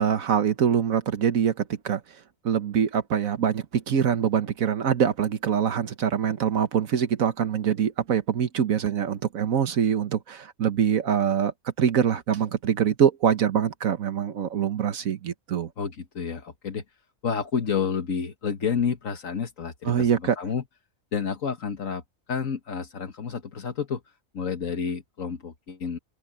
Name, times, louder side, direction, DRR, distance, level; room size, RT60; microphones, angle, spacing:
voice 1, 0.0-2.0 2.4-15.7 19.8-20.4, right 8 dB, 85° right, 1.5 m, -24 dB
voice 2, 15.8-16.8 17.2-20.1 20.4-20.6 21.1-22.0 22.3-24.0 24.3-26.0, left 6 dB, 75° left, 1.8 m, -29 dB
open air
omnidirectional pair, 1.4 m